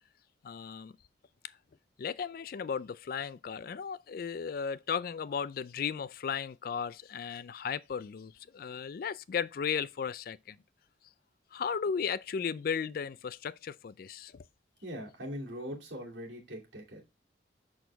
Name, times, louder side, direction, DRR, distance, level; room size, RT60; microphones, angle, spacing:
voice 1, 0.4-0.9 2.0-10.6 11.5-14.4, left 6 dB, 50° left, 0.3 m, -35 dB
voice 2, 14.8-17.0, equal, 75° right, 2.6 m, -41 dB
6.3 x 6.1 x 3.3 m
head